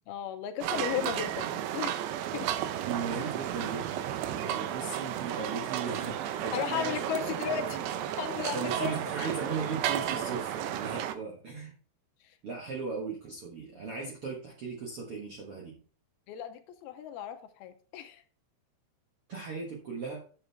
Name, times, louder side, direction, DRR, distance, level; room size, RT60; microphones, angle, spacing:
voice 1, 0.1-2.1 2.3-2.5 6.5-7.8 8.2-9.0 12.2-12.4 16.3-18.2, left 9 dB, 80° left, 2.4 m, -35 dB
sound 1, 0.6-11.2, right 11 dB, 90° right, 2.9 m, -33 dB
voice 2, 2.8-7.9 8.5-11.8 12.4-15.8 19.3-20.2, right 4 dB, 60° right, 1.4 m, -38 dB
8.9 x 7.4 x 3.4 m
omnidirectional pair, 4.7 m